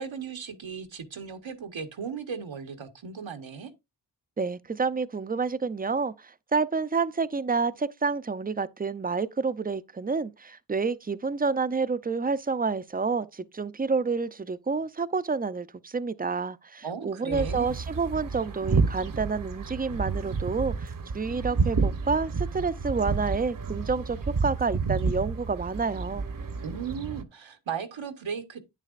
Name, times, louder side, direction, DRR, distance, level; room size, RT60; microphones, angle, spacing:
voice 1, 0.0-3.7 16.8-17.8 26.6-28.6, right 6 dB, 80° right, 1.1 m, -36 dB
voice 2, 4.4-26.2, right 4 dB, 20° right, 0.5 m, -29 dB
sound 1, 17.3-27.2, right 4 dB, 45° right, 0.9 m, -30 dB
9.0 x 7.4 x 2.4 m
cardioid pair, 45°, 46 cm